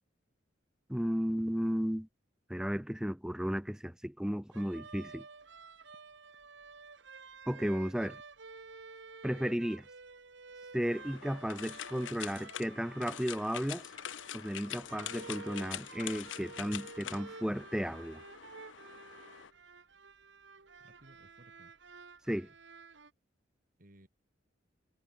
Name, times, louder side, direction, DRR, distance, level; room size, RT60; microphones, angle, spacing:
voice 1, 0.9-2.1 2.5-5.2 7.5-8.2 9.2-9.8 10.7-13.9 14.3-18.2 22.3-22.5, equal, 5° right, 0.7 m, -34 dB
sound 1, 4.5-23.1, right 4 dB, 70° right, 1.5 m, -52 dB
sound 2, 10.8-19.5, left 10 dB, 80° left, 0.6 m, -45 dB
voice 2, 20.8-21.7 23.8-24.1, right 1 dB, 45° right, 2.6 m, -60 dB
head